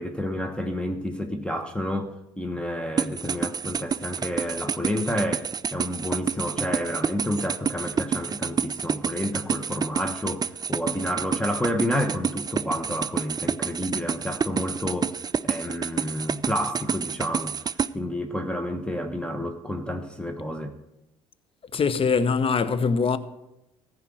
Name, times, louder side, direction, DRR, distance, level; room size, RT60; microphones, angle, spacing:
voice 1, 0.0-17.6 17.9-20.7, equal, 5° left, 1.1 m, -30 dB
sound 1, 3.0-17.9, right 6 dB, 25° right, 0.4 m, -28 dB
voice 2, 21.7-23.2, left 5 dB, 40° left, 0.8 m, -22 dB
14.0 x 5.1 x 7.7 m
supercardioid pair, 70°, 15 cm